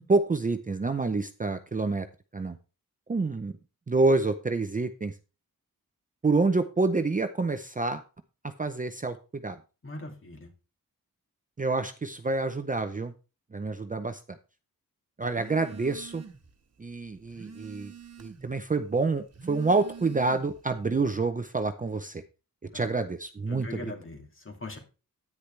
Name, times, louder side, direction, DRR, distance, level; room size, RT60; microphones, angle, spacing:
voice 1, 0.1-2.1 2.3-2.6 3.1-3.5 3.9-5.2 6.2-8.0 8.6-9.6 11.6-13.1 13.5-14.4 15.2-16.2 16.8-17.9 18.2-22.2 22.7-23.8, right 3 dB, 25° right, 8 dB, 0.6 m, -27 dB
voice 2, 9.8-10.5 22.7-22.9 23.5-24.8, left 2 dB, 35° left, 2 dB, 2.4 m, -41 dB
Telephone, 15.3-16.5 16.9-18.6 19.2-20.7, right 5 dB, 50° right, 1.4 m, -46 dB
10.0 x 9.6 x 3.2 m, 0.32 s
wide cardioid pair, 165°, 34 cm